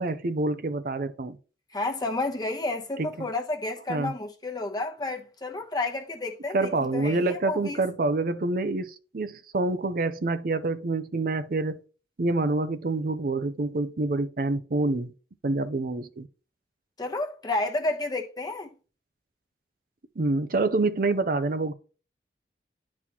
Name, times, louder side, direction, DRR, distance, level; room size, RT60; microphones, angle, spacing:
voice 1, 0.0-1.4 3.0-3.3 3.9-4.1 6.5-11.8 12.2-15.1 15.4-16.3 20.2-21.7, right 2 dB, 50° right, 0.5 m, -27 dB
voice 2, 1.7-7.8 17.0-18.7, left 2 dB, 20° left, 1.0 m, -31 dB
11.0 x 4.1 x 2.9 m
head